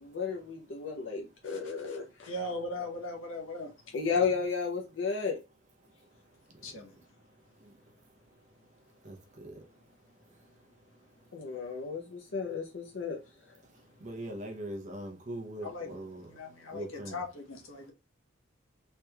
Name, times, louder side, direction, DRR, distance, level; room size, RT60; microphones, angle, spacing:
voice 1, 0.0-2.3 3.9-5.4 11.3-13.2, left 5 dB, 65° left, 0.5 m, -33 dB
voice 2, 2.3-3.7 6.6-6.9 15.6-17.9, left 1 dB, 85° left, 0.9 m, -39 dB
voice 3, 9.0-9.6 14.0-16.3 16.7-17.2, right 1 dB, 35° right, 0.6 m, -41 dB
3.3 x 2.9 x 2.2 m
head